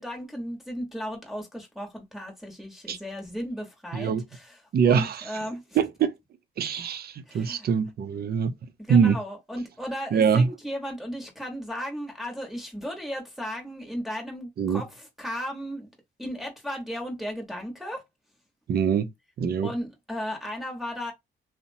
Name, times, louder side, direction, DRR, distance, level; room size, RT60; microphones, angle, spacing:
voice 1, 0.0-4.6 4.8-5.6 7.3-7.7 8.9-15.9 16.2-18.0 19.6-21.1, equal, ahead, 1.0 m, -35 dB
voice 2, 3.9-4.2 4.7-5.4 5.8-6.1 6.6-8.5 8.9-9.2 10.1-10.5 14.6-14.8 18.7-19.1 19.4-19.7, right 6 dB, 50° right, 0.5 m, -23 dB
2.8 x 2.1 x 2.6 m
cardioid pair, 90°, 20 cm